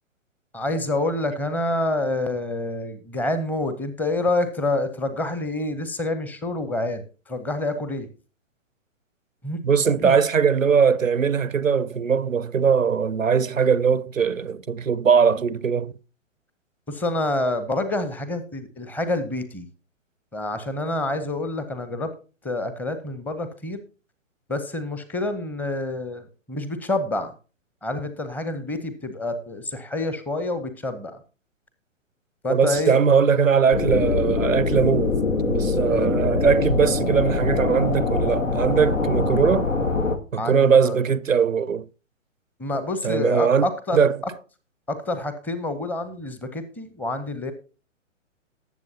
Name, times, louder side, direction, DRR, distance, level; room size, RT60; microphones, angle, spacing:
voice 1, 0.5-7.0 7.3-8.1 9.4-9.6 10.0-10.1 16.9-19.7 20.3-22.1 22.4-23.8 24.5-27.3 27.8-31.2 32.4-33.0 40.4-41.0 42.6-44.1 44.9-47.5, left 2 dB, 5° left, 0.7 m, -27 dB
voice 2, 9.6-15.9 32.5-35.2 35.5-39.7 40.3-41.9 43.0-43.7 43.9-44.2, right 6 dB, 90° right, 0.7 m, -20 dB
sound 1, 33.7-40.2, left 3 dB, 80° left, 1.6 m, -23 dB
19.0 x 7.5 x 2.8 m
figure-of-eight pair, 125°, 38 cm